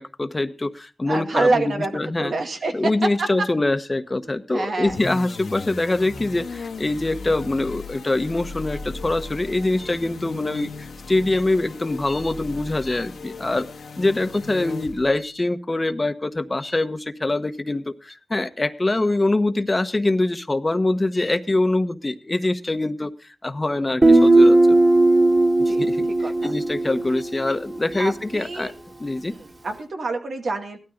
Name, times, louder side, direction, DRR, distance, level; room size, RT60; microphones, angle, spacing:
voice 1, 0.0-2.3 2.7-13.7 14.0-23.1 23.4-24.6 25.6-28.7 29.0-29.3, left 2 dB, 30° left, 10 dB, 1.2 m, -24 dB
voice 2, 1.1-2.7 3.2-3.3 4.5-5.0 25.7-25.8 26.2-26.5 28.0-28.7 29.3-30.8, right 3 dB, 75° right, 4 dB, 2.3 m, -26 dB
sound 1, 4.8-15.3, left 3 dB, 90° left, 2.0 m, -36 dB
Guitar, 24.0-27.7, right 2 dB, 35° right, 3.1 m, -17 dB
17.0 x 12.5 x 3.8 m, 0.32 s
cardioid pair, 60°, 0 cm